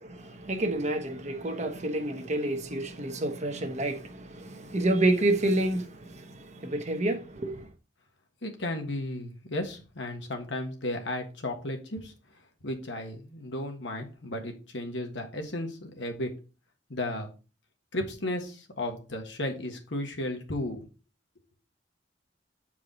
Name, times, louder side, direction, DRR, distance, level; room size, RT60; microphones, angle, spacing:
voice 1, 0.0-7.7, right 1 dB, 40° right, 1.0 m, -29 dB
voice 2, 8.4-12.1 12.6-16.3 16.9-17.3 17.9-20.8, left 1 dB, 75° left, 1.5 m, -34 dB
7.5 x 4.7 x 4.0 m
head